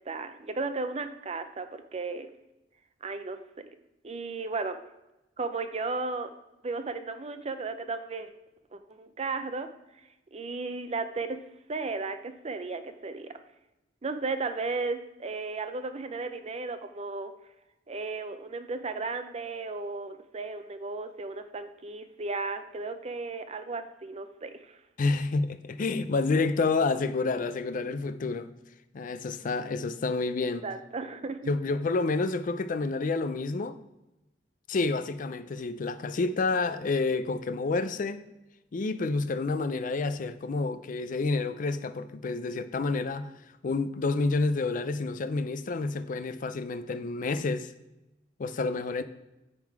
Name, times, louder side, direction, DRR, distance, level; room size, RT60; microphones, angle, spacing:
voice 1, 0.1-2.3 3.0-3.4 4.0-4.8 5.4-6.3 6.6-8.3 8.7-9.7 10.3-11.4 11.7-13.3 14.0-17.3 17.9-24.8 30.4-31.5, right 3 dB, 35° right, 0.5 m, -35 dB
voice 2, 25.0-28.5 28.9-30.6 31.5-33.8 34.7-38.2 38.7-43.3 43.6-47.7 48.4-49.0, left 3 dB, 45° left, 0.4 m, -29 dB
9.4 x 3.6 x 4.7 m
head